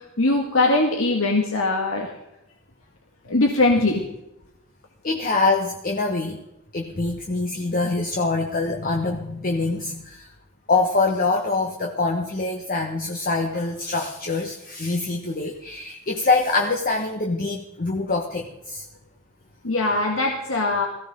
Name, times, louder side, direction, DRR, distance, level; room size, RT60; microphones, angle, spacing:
voice 1, 0.2-2.1 3.3-4.1 19.6-20.9, left 2 dB, 85° left, 0 dB, 1.8 m, -21 dB
voice 2, 5.0-6.4 6.7-10.3 10.7-18.8, left 3 dB, 45° left, 3 dB, 1.3 m, -24 dB
17.5 x 15.5 x 3.8 m, 0.87 s
head